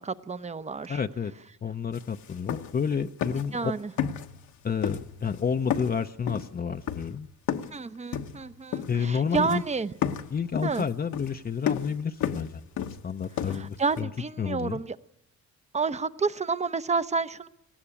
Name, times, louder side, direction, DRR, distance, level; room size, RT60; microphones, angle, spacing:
voice 1, 0.0-1.0 3.5-3.9 7.7-9.9 10.6-10.9 13.5-15.0 15.7-17.5, right 4 dB, 25° right, 14 dB, 0.8 m, -30 dB
voice 2, 0.9-1.3 1.6-3.7 4.6-7.3 8.9-9.6 10.3-12.7 13.0-14.1 14.4-14.8, left 6 dB, 30° left, 7 dB, 0.7 m, -30 dB
sound 1, 1.9-2.0 2.3-2.9 3.2-3.6 4.0-4.5 4.8-5.4 5.7-7.8 8.1-9.1 9.4-9.7 10.0-14.0, left 9 dB, 75° left, 1.2 m, -32 dB
19.0 x 15.5 x 9.9 m, 0.89 s
cardioid pair, 90°, 30 cm